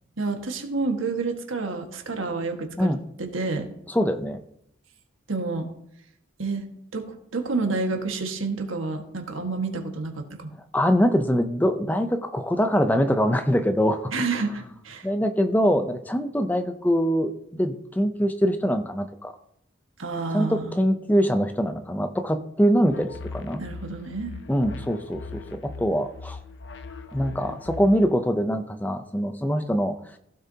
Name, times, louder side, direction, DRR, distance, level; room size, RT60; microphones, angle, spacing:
voice 1, 0.2-2.9 3.2-3.7 5.3-5.7 6.4-6.7 6.9-7.1 7.3-10.5 14.1-15.1 20.0-20.7 23.6-24.3, right 3 dB, 90° right, 3 dB, 1.7 m, -29 dB
voice 2, 3.9-4.4 10.7-14.1 15.0-19.3 20.3-23.6 24.5-26.4 27.1-29.9, equal, 10° left, 8 dB, 0.5 m, -23 dB
sound 1, 22.9-28.1, left 3 dB, 65° left, 0.6 m, -40 dB
15.5 x 6.9 x 2.8 m, 0.75 s
head